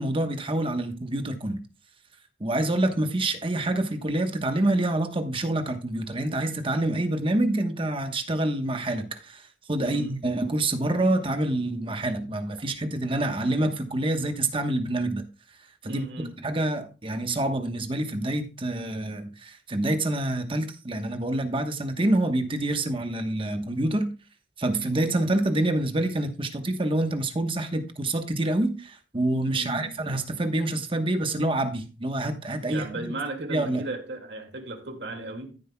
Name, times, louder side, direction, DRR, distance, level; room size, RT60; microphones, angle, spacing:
voice 1, 0.0-1.6 2.4-15.2 15.8-16.1 16.4-24.1 24.6-33.1 33.5-33.9, right 1 dB, 30° right, 1.1 m, -27 dB
voice 2, 9.8-10.1 15.8-16.4 29.5-30.0 32.7-35.6, right 2 dB, 80° right, 2.1 m, -36 dB
14.0 x 7.6 x 2.2 m
head